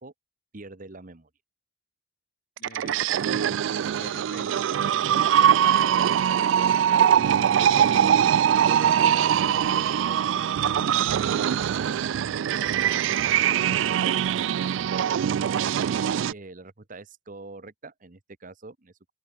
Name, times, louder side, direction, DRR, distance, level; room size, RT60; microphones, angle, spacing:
voice 1, 0.5-1.3 15.9-18.9, right 2 dB, 45° right, 1.3 m, -44 dB
voice 2, 2.6-3.7 4.0-6.2 6.7-8.3 9.0-13.1 13.6-14.2, left 2 dB, 55° left, 2.1 m, -47 dB
sound 1, 2.6-16.3, right 9 dB, 80° right, 0.3 m, -22 dB
open air
head